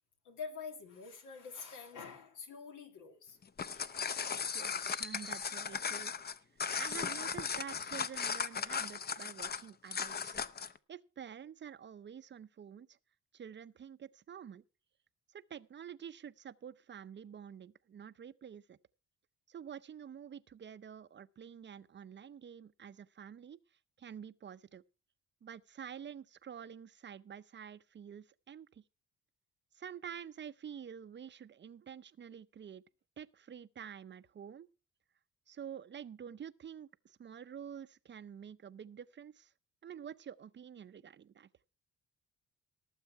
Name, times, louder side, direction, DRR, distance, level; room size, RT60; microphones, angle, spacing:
voice 1, 0.2-3.4 3.7-4.0, left 5 dB, 80° left, 2.4 m, -46 dB
sound 1, 3.4-10.8, left 6 dB, 35° left, 0.7 m, -37 dB
voice 2, 4.5-6.1 6.8-10.4 10.9-13.0 13.3-14.6 15.3-18.8 19.5-23.6 24.0-24.8 25.4-28.8 29.7-32.8 33.2-34.7 35.5-39.5 39.8-41.5, right 8 dB, 40° right, 0.6 m, -48 dB
18.0 x 7.4 x 4.6 m
cardioid pair, 90°, 30 cm